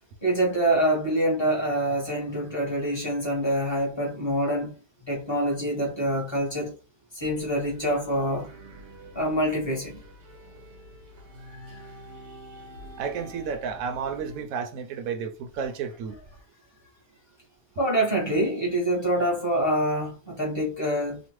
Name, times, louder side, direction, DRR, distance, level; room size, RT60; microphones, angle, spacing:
voice 1, 0.2-4.7 5.1-6.8 7.1-8.5 9.1-10.0 17.8-21.2, right 1 dB, 20° left, 0.8 m, -25 dB
sound 1, 7.2-14.4, equal, 85° right, 1.5 m, -46 dB
voice 2, 12.3-12.6 13.0-16.2, right 6 dB, 70° right, 1.0 m, -32 dB
3.0 x 2.2 x 3.0 m
omnidirectional pair, 1.7 m